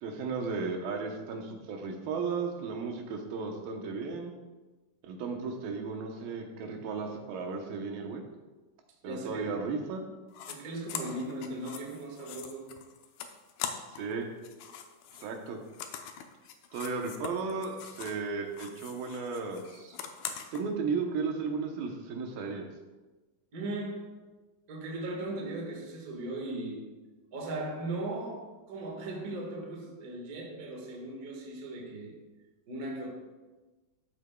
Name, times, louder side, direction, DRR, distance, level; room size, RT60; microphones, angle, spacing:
voice 1, 0.0-4.3 5.1-8.2 9.0-10.0 14.0-14.3 15.2-15.6 16.7-20.0 20.5-22.7, right 4 dB, 85° right, 2.8 m, -35 dB
voice 2, 9.0-9.5 10.5-12.8 14.7-14.8 23.5-24.3 24.7-27.0 27.3-32.1 32.7-33.1, right 2 dB, 40° right, 1.4 m, -38 dB
sound 1, 10.3-10.6 10.9-14.1 14.4-18.3 18.5-20.6, left 8 dB, 80° left, 1.7 m, -42 dB
13.0 x 7.9 x 2.3 m
omnidirectional pair, 4.0 m